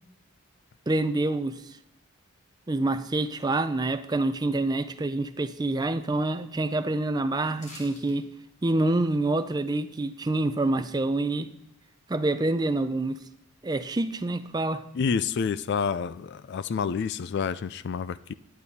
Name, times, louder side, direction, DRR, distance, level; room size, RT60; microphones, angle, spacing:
voice 1, 0.9-1.6 2.7-8.2 8.6-11.5 12.1-13.2 13.6-14.8, right 2 dB, 20° right, 0.4 m, -27 dB
sound 1, 7.6-8.2 8.5-8.6, left 1 dB, 35° left, 2.5 m, -46 dB
voice 2, 14.9-18.3, left 6 dB, 50° left, 0.3 m, -28 dB
10.5 x 8.3 x 4.1 m
head